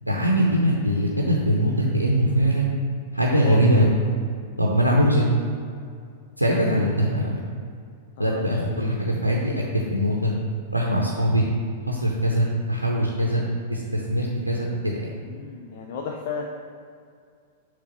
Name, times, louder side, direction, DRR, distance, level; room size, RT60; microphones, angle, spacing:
voice 1, 0.0-2.7 3.1-3.9 4.6-5.3 6.4-7.4 8.2-9.6 9.9-10.3 10.7-11.5 11.9-13.4 13.7-15.1, equal, 90° right, -2 dB, 0.7 m, -22 dB
voice 2, 8.2-8.9 15.2-16.5, left 5 dB, 50° left, 0 dB, 0.5 m, -34 dB
6.8 x 3.3 x 5.5 m, 2.2 s
figure-of-eight pair, 100°, 0 cm